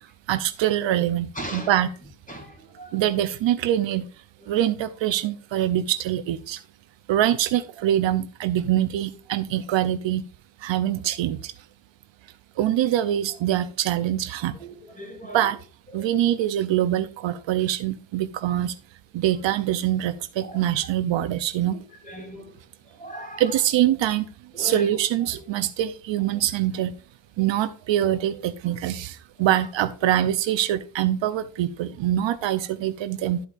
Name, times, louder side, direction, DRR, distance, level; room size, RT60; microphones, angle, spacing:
voice 1, 0.3-1.9 2.9-4.1 4.5-6.6 7.1-10.2 10.6-11.5 12.6-14.6 15.3-15.6 15.9-18.8 19.1-21.8 23.4-24.3 24.6-26.9 27.4-33.4, right 12 dB, 65° right, 12 dB, 0.7 m, -24 dB
voice 2, 1.3-1.7 2.3-3.0 14.6-15.5 15.9-16.1 20.4-20.6 21.7-22.5 23.0-23.4 24.5-25.0, equal, 15° left, 3 dB, 2.6 m, -38 dB
11.5 x 8.1 x 2.5 m, 0.38 s
cardioid pair, 160°, 49 cm